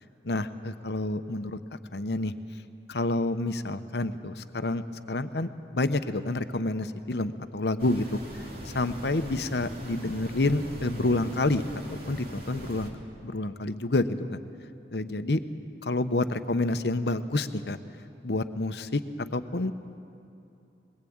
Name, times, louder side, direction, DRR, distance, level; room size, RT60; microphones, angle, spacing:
voice 1, 0.2-1.6 1.9-2.3 2.9-8.2 8.6-11.6 11.9-12.9 13.2-14.4 14.9-15.4 15.8-17.8 18.2-19.0 19.3-19.7, left 2 dB, 70° left, 10 dB, 0.9 m, -28 dB
sound 1, 7.8-12.9, equal, 60° right, 3.1 m, -41 dB
22.0 x 20.0 x 8.7 m, 2.8 s
head